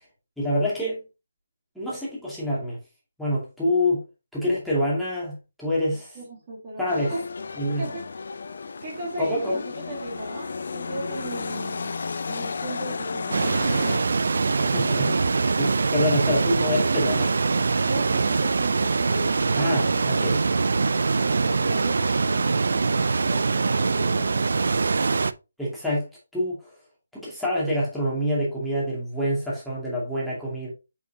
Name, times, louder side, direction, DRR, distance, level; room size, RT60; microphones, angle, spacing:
voice 1, 0.4-1.0 1.8-2.8 3.2-4.0 4.3-6.2 6.8-7.1 7.6-7.8 9.2-9.6 14.6-15.2 15.6-17.3 19.6-20.4 25.6-26.1 26.3-26.7 27.1-30.7, left 1 dB, ahead, 2.4 m, -26 dB
voice 2, 5.9-7.2 7.8-8.1 8.8-11.9 12.3-14.8 17.8-20.6 21.3-24.5, right 1 dB, 25° right, 2.0 m, -37 dB
sound 1, 6.9-14.0, left 4 dB, 60° left, 0.6 m, -33 dB
sound 2, 13.3-25.3, right 4 dB, 70° right, 0.5 m, -23 dB
6.4 x 5.3 x 2.8 m
hypercardioid pair, 165°, 0 cm